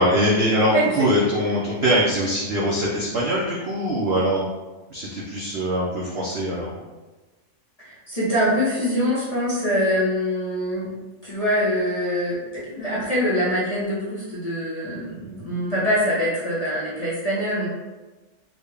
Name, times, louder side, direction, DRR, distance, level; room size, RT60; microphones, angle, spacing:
voice 1, 0.0-4.5 4.9-6.8, equal, 65° right, -5 dB, 0.6 m, -22 dB
voice 2, 7.8-10.9 11.2-17.7, equal, 30° left, -9 dB, 0.7 m, -24 dB
3.9 x 2.2 x 3.4 m, 1.2 s
omnidirectional pair, 1.7 m